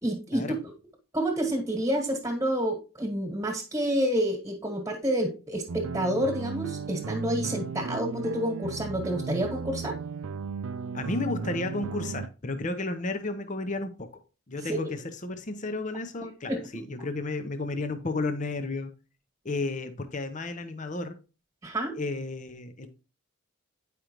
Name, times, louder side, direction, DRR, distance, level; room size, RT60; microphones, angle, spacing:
voice 1, 0.0-0.5 1.1-10.0 14.7-14.8 16.5-16.8 21.6-21.9, equal, 10° right, 1.5 m, -29 dB
sound 1, 5.7-12.3, right 5 dB, 70° right, 0.4 m, -35 dB
voice 2, 10.9-14.2 14.5-18.9 19.4-21.2 22.0-22.9, left 2 dB, 35° left, 0.7 m, -32 dB
9.3 x 5.0 x 3.0 m
head